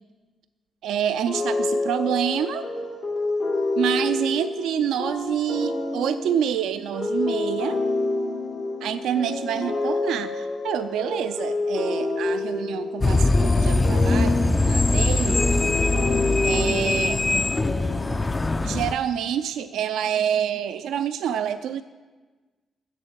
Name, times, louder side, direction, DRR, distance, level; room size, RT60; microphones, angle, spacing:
voice 1, 0.8-2.7 3.8-7.8 8.8-14.4 14.6-15.5 16.4-17.2 18.6-21.8, right 9 dB, 85° right, 10 dB, 0.3 m, -27 dB
sound 1, 1.3-18.4, left 2 dB, 85° left, 2.4 m, -28 dB
sound 2, 13.0-18.9, left 2 dB, 25° left, 0.4 m, -21 dB
8.1 x 7.2 x 8.3 m, 1.3 s
cardioid pair, 70°, 0 cm